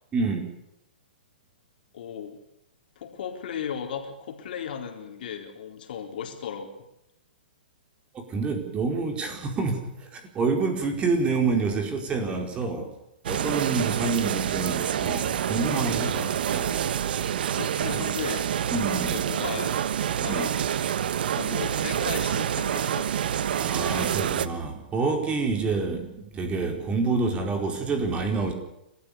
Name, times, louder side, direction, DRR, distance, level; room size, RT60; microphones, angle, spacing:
voice 1, 0.1-0.5 8.1-12.9 13.2-16.8 18.7-19.2 20.3-20.5 23.5-28.5, right 4 dB, 20° right, 4 dB, 4.7 m, -28 dB
voice 2, 1.9-2.4 3.0-6.7 13.7-14.2 16.2-16.3 17.5-18.5 19.1-19.8 20.2-20.6 21.3-23.2, left 8 dB, 60° left, 4 dB, 4.1 m, -36 dB
sound 1, 13.2-24.5, right 9 dB, 65° right, 1.2 m, -27 dB
29.5 x 14.0 x 7.0 m, 0.85 s
hypercardioid pair, 130°, 6 cm